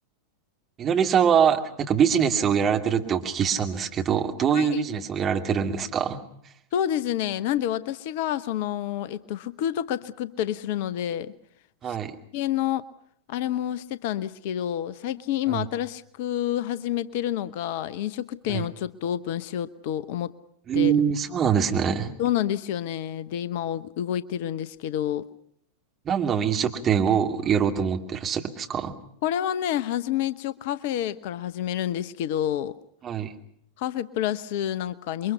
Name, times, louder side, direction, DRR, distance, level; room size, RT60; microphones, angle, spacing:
voice 1, 0.8-6.2 11.8-12.1 15.5-15.7 18.5-18.6 20.7-22.1 26.1-28.9 33.0-33.3, right 7 dB, 25° right, 4 dB, 2.6 m, -23 dB
voice 2, 4.5-4.8 6.7-11.3 11.9-12.0 12.3-12.8 13.3-20.3 20.7-20.9 22.2-25.3 29.2-32.7 33.8-35.3, left 11 dB, 50° left, 16 dB, 0.9 m, -28 dB
28.5 x 23.0 x 5.7 m, 0.69 s
figure-of-eight pair, 90°, 0 cm